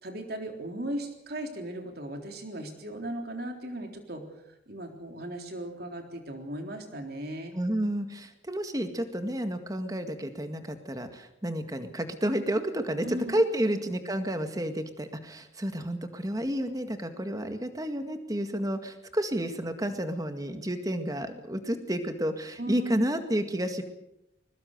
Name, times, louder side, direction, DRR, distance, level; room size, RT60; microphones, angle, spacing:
voice 1, 0.0-4.2 4.7-7.5 13.0-13.3 22.6-23.0, right 1 dB, 55° right, 4 dB, 3.7 m, -37 dB
voice 2, 7.5-23.8, right 1 dB, 20° right, 7 dB, 1.9 m, -31 dB
21.5 x 21.0 x 6.7 m, 0.88 s
head